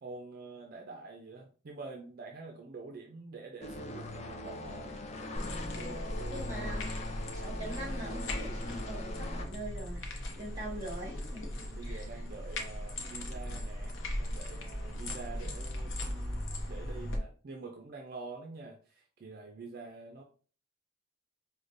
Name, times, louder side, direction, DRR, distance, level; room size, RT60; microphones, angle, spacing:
voice 1, 0.0-5.0 5.6-6.8 10.3-10.6 11.5-20.2, right 3 dB, 50° right, 2 dB, 0.5 m, -47 dB
sound 1, 3.6-9.5, left 2 dB, 35° left, 0.5 m, -41 dB
sound 2, 5.3-17.2, left 1 dB, 80° left, 0.7 m, -38 dB
voice 2, 6.3-6.9 7.3-10.1 10.3-11.5 11.8-12.2, right 1 dB, 20° right, -3 dB, 1.6 m, -42 dB
4.8 x 2.1 x 2.6 m, 0.40 s
head